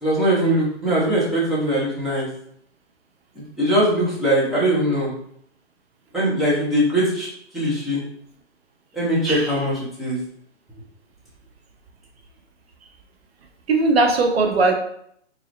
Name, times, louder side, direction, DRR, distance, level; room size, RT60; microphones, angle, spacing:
voice 1, 0.0-2.3 3.3-5.1 6.1-7.3 7.5-8.0 8.9-9.7 10.0-10.2, right 1 dB, ahead, -10 dB, 1.1 m, -21 dB
voice 2, 9.2-9.6 13.7-14.7, right 3 dB, 60° right, 3 dB, 0.8 m, -19 dB
4.7 x 2.8 x 3.2 m, 0.68 s
hypercardioid pair, 150°, 35 cm